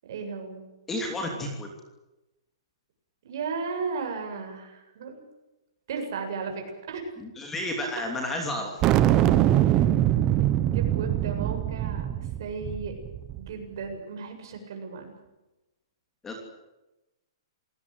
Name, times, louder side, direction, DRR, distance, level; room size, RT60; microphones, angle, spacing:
voice 1, 0.0-0.7 3.2-5.2 5.9-7.1 10.4-13.0 13.4-15.1, right 5 dB, 45° right, 4 dB, 7.7 m, -35 dB
voice 2, 0.9-1.7 7.2-8.8 16.2-16.4, left 1 dB, 10° left, 2 dB, 2.9 m, -31 dB
sound 1, 8.8-13.5, right 12 dB, 15° right, 0.9 m, -23 dB
28.0 x 19.0 x 8.1 m, 1.0 s
hypercardioid pair, 175°, 3 cm